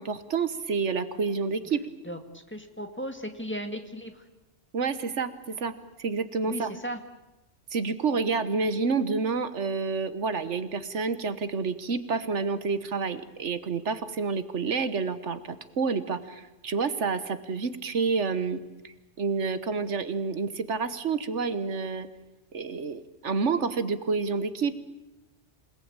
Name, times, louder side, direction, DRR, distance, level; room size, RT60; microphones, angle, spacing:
voice 1, 0.0-1.8 4.7-5.7 6.0-6.7 7.7-22.1 22.5-24.8, right 4 dB, 75° right, 12 dB, 1.5 m, -29 dB
voice 2, 2.0-4.2 6.4-7.0, equal, 10° left, 5 dB, 1.9 m, -36 dB
27.5 x 18.5 x 8.9 m, 1.0 s
omnidirectional pair, 1.2 m